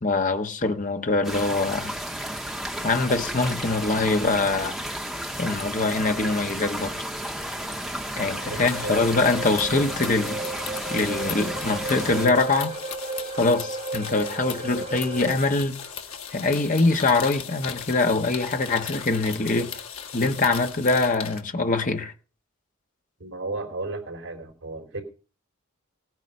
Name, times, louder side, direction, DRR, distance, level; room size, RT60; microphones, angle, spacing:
voice 1, 0.0-1.9 2.8-4.8 5.4-7.0 8.2-10.4 10.9-12.7 13.4-15.8 16.3-19.7 20.1-22.1, left 3 dB, 35° left, 1.2 m, -23 dB
sound 1, 1.2-12.3, equal, ahead, 1.2 m, -33 dB
sound 2, 5.1-15.4, right 3 dB, 35° right, 3.0 m, -36 dB
sound 3, 8.5-21.4, left 7 dB, 80° left, 1.6 m, -38 dB
voice 2, 8.5-9.0 23.2-25.0, right 2 dB, 65° right, 3.9 m, -34 dB
18.0 x 9.2 x 5.5 m
head